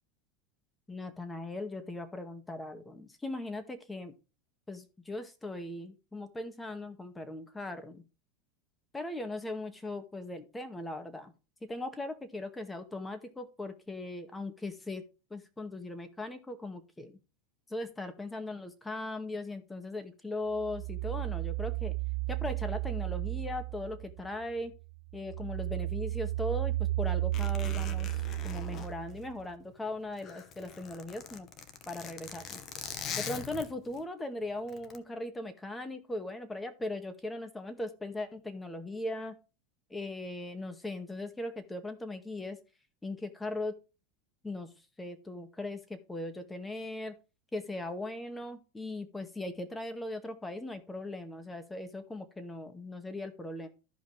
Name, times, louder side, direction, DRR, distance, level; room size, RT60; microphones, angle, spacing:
voice 1, 0.9-4.1 4.7-8.0 8.9-11.3 11.6-15.1 15.3-17.2 17.7-21.9 22.3-24.7 25.1-31.5 31.9-32.6 33.2-39.4 39.9-42.6 43.0-43.8 44.4-44.7 45.0-47.2 47.5-53.7, left 2 dB, 10° left, 8 dB, 2.0 m, -39 dB
sound 1, 20.6-24.4 24.8-29.4, right 17 dB, 65° right, 0.3 m, -34 dB
Zipper (clothing), 27.3-29.7 30.1-34.0 34.7-35.0, left 7 dB, 40° left, 1.7 m, -42 dB
14.5 x 5.3 x 3.4 m, 0.31 s
hypercardioid pair, 100°, 0 cm